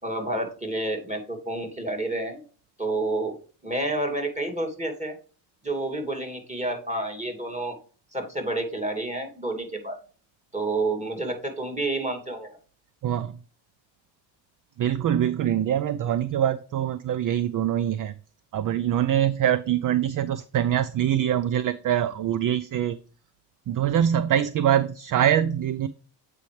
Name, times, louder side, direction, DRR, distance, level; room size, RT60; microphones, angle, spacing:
voice 1, 0.0-2.4 2.8-3.4 3.6-5.2 5.6-7.8 8.1-10.0 10.5-12.6, right 2 dB, 15° right, 4 dB, 2.5 m, -29 dB
voice 2, 13.0-13.4 14.8-18.1 18.5-23.0 23.7-25.9, right 10 dB, 45° right, 15 dB, 0.5 m, -24 dB
8.2 x 4.6 x 3.2 m, 0.39 s
supercardioid pair, 65°, 47 cm